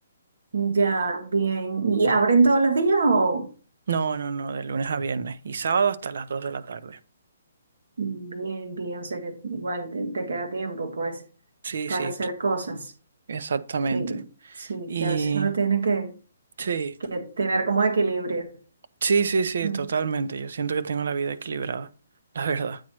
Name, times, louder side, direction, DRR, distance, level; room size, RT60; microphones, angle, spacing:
voice 1, 0.5-3.5 8.0-11.2 11.9-12.9 13.9-14.2 14.6-16.1 17.1-18.5 19.6-19.8, right 4 dB, 80° right, 1.5 m, -25 dB
voice 2, 3.9-7.0 11.6-12.1 13.3-14.2 14.6-15.5 16.6-17.0 19.0-21.9 22.3-22.8, right 5 dB, 65° right, 0.5 m, -27 dB
8.8 x 3.1 x 5.9 m
hypercardioid pair, 170°, 0 cm